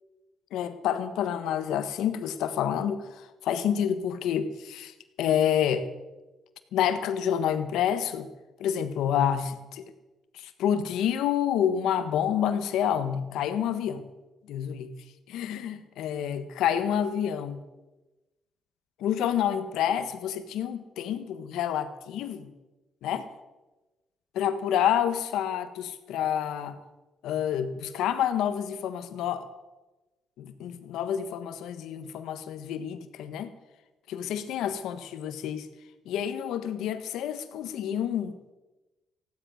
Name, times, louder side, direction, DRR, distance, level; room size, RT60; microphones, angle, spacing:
voice 1, 0.5-4.9 5.2-5.9 6.7-8.3 8.6-9.8 10.3-14.1 14.5-14.9 15.3-17.6 19.0-22.5 23.0-23.3 24.3-26.8 27.2-29.5 30.4-33.5 34.1-35.7 36.0-38.5, left 9 dB, 85° left, 10 dB, 1.3 m, -28 dB
15.5 x 11.5 x 6.4 m, 1.1 s
cardioid pair, 100°, 0 cm